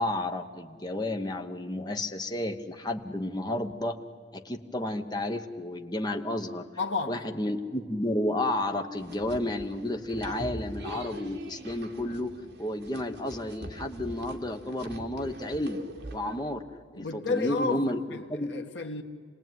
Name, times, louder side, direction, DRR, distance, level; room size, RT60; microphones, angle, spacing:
voice 1, 0.0-4.0 4.3-6.6 7.1-12.3 12.6-15.8 16.1-16.6 16.9-18.0 18.3-18.5, left 1 dB, 20° left, 1.1 m, -31 dB
voice 2, 6.8-7.2 17.0-19.0, left 4 dB, 70° left, 1.7 m, -32 dB
sound 1, 9.0-16.4, right 1 dB, 60° right, 2.2 m, -43 dB
27.0 x 19.0 x 9.4 m
head